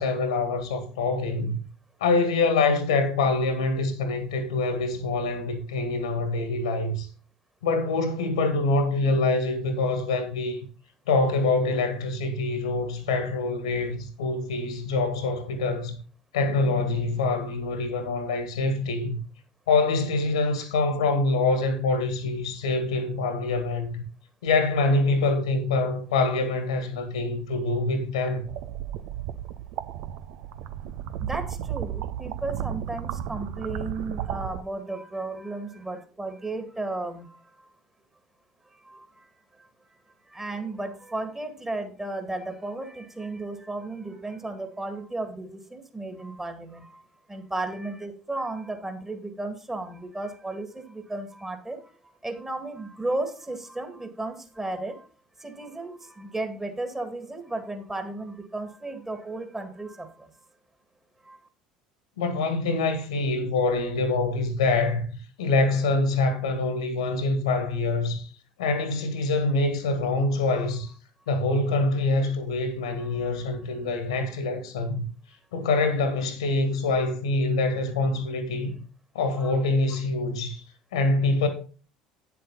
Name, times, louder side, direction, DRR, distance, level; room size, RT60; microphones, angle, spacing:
voice 1, 0.0-1.6 2.0-7.1 7.6-10.6 11.1-16.0 16.3-19.2 19.7-24.0 24.4-28.4 62.2-65.0 65.4-68.3 68.6-70.9 71.3-75.0 75.5-78.8 79.1-80.6 80.9-81.5, left 3 dB, 70° left, 1.9 m, -25 dB
sound 1, 28.5-34.6, right 10 dB, 60° right, 0.7 m, -34 dB
voice 2, 31.2-37.7 38.8-39.3 39.6-47.0 47.3-55.1 55.4-60.3 61.2-61.4 73.0-73.3 79.3-79.5, right 2 dB, 15° right, 2.1 m, -34 dB
9.2 x 7.7 x 4.0 m
figure-of-eight pair, 65°, 3 cm